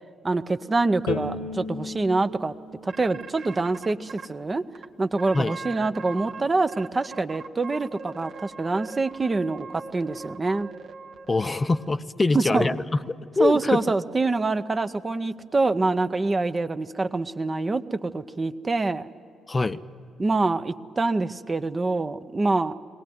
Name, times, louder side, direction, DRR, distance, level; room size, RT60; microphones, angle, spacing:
voice 1, 0.2-2.5 2.8-4.6 5.0-10.7 12.3-12.7 13.4-19.1 20.2-22.7, right 3 dB, 30° right, 11 dB, 0.7 m, -25 dB
Bowed string instrument, 1.1-4.3, left 4 dB, 80° left, 1.1 m, -36 dB
sound 1, 2.9-4.3 4.7-4.8 5.2-6.4 6.7-11.9, right 4 dB, 60° right, 1.0 m, -40 dB
voice 2, 11.3-13.8 19.5-19.8, left 3 dB, 30° left, 12 dB, 0.6 m, -24 dB
22.0 x 18.5 x 9.4 m, 2.7 s
figure-of-eight pair, 40°, 0 cm